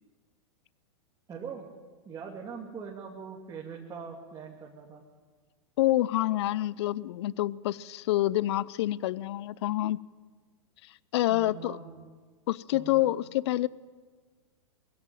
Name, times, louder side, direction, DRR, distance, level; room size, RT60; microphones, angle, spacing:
voice 1, 1.3-1.7 2.0-5.0 11.3-12.0 12.7-13.2, right 6 dB, 25° right, -2 dB, 2.8 m, -42 dB
voice 2, 5.8-10.0 10.8-11.8 12.5-13.7, left 15 dB, 60° left, 21 dB, 0.5 m, -27 dB
22.0 x 16.0 x 9.1 m, 1.5 s
hypercardioid pair, 110°, 16 cm